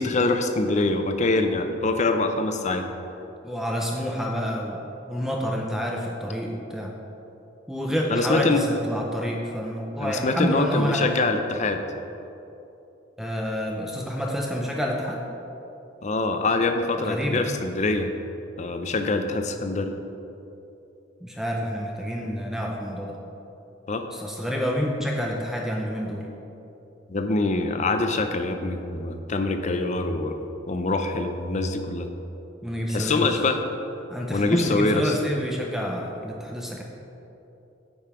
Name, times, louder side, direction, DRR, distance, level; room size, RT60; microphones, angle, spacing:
voice 1, 0.0-2.9 8.1-8.6 10.0-11.8 16.0-18.1 18.6-19.9 23.9-24.1 27.1-30.4 30.7-32.1 32.9-33.6 34.3-35.1, left 3 dB, 40° left, 7 dB, 0.6 m, -24 dB
voice 2, 3.4-6.9 7.7-11.1 13.2-15.2 17.0-17.5 21.2-23.2 24.1-26.3 32.6-33.3 34.1-36.8, equal, ahead, -1 dB, 0.6 m, -28 dB
9.0 x 5.5 x 4.9 m, 2.9 s
head